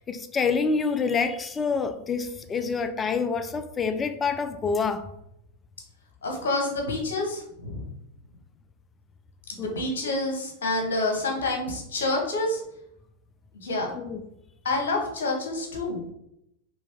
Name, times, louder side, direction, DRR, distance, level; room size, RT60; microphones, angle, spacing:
voice 1, 0.0-5.1 9.6-9.7 13.9-14.2, left 5 dB, 20° left, 0.4 m, -27 dB
voice 2, 6.2-7.8 9.5-12.6 13.6-13.9 14.6-16.0, left 2 dB, 70° left, 1.3 m, -28 dB
4.0 x 3.3 x 3.5 m
figure-of-eight pair, 90°, 0 cm